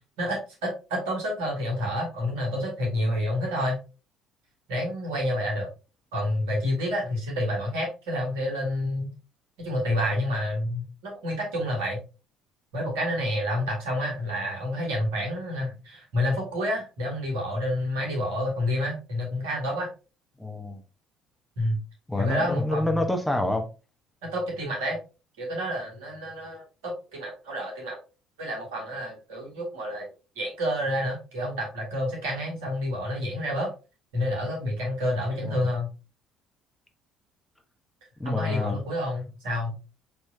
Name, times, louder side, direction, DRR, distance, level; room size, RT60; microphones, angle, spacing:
voice 1, 0.2-3.8 4.7-5.7 6.1-9.1 9.6-12.0 12.7-19.9 21.6-21.8 22.2-22.9 24.2-25.0 25.4-28.0 28.4-30.1 30.4-33.7 34.1-35.9 38.2-39.7, left 1 dB, 70° right, 1.7 m, -29 dB
voice 2, 20.4-20.8 22.1-23.7 35.4-35.6 38.2-38.8, left 2 dB, 10° left, 1.0 m, -27 dB
5.5 x 3.0 x 2.7 m
figure-of-eight pair, 55°, 0 cm